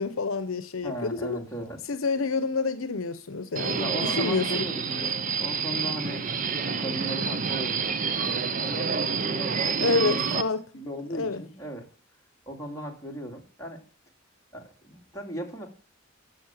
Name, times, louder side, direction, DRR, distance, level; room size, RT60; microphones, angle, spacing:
voice 1, 0.0-1.4 1.9-4.7 9.8-10.6 11.1-11.4, left 4 dB, 75° left, 0.8 m, -28 dB
voice 2, 0.8-1.8 3.8-10.4 10.7-11.9 12.5-13.8 14.5-15.7, right 1 dB, 15° left, 2.6 m, -37 dB
Subway metro underground, 3.6-10.4, right 6 dB, 40° right, 0.6 m, -28 dB
11.5 x 6.5 x 7.4 m
head